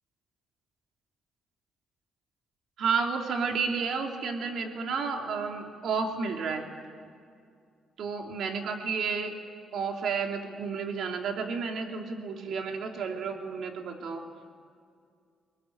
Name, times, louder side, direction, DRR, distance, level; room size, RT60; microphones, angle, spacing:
voice 1, 2.8-6.6 8.0-9.3 9.7-14.2, right 5 dB, 70° right, 3 dB, 3.0 m, -31 dB
23.5 x 19.5 x 10.0 m, 2.2 s
cardioid pair, 90°, 0 cm